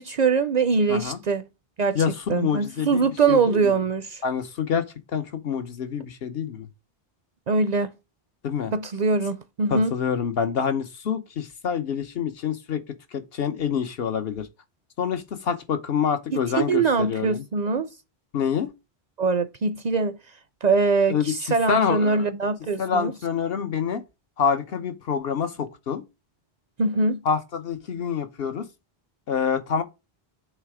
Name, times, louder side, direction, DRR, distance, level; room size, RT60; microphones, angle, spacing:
voice 1, 0.0-1.5 1.8-2.0 2.3-4.2 7.5-7.9 8.7-9.9 16.5-17.9 19.2-20.2 20.6-23.1 26.8-27.2, right 4 dB, 55° right, 0.5 m, -23 dB
voice 2, 0.9-1.2 1.9-3.8 4.2-4.9 5.1-6.7 8.4-8.7 9.7-12.8 13.1-14.5 15.0-17.4 18.3-18.7 21.1-21.3 21.7-22.3 22.8-24.0 24.4-26.0 27.2-28.7 29.3-29.8, left 7 dB, 70° left, 1.1 m, -26 dB
8.0 x 3.3 x 4.8 m
omnidirectional pair, 1.0 m